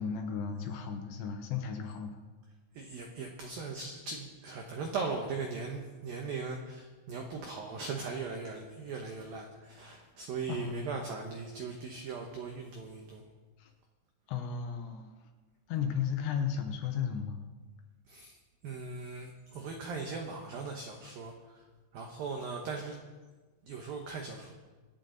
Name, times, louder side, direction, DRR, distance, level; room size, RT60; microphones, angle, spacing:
voice 1, 0.0-2.2 10.5-11.0 13.6-13.7 14.3-15.1 15.7-17.4, left 7 dB, 70° left, 4 dB, 3.1 m, -34 dB
voice 2, 2.7-13.2 18.1-18.4 18.6-21.6 21.9-23.0 23.6-24.5, right 4 dB, 90° right, 2 dB, 2.0 m, -39 dB
25.0 x 9.2 x 3.9 m, 1.3 s
omnidirectional pair, 5.9 m